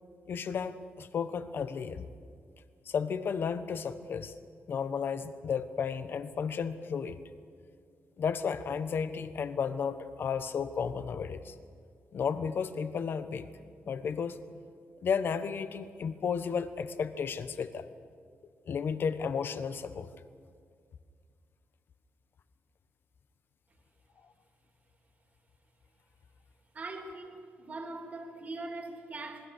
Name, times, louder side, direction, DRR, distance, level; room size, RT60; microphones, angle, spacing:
voice 1, 0.3-2.1 2.9-4.3 4.7-7.2 8.2-11.5 12.1-13.5 13.9-14.4 15.0-17.9 18.7-20.1, left 6 dB, 55° left, 11 dB, 1.1 m, -33 dB
voice 2, 26.7-29.5, right 2 dB, 35° right, 3 dB, 3.0 m, -41 dB
26.5 x 20.5 x 6.6 m, 2.2 s
cardioid pair, 125°, 4 cm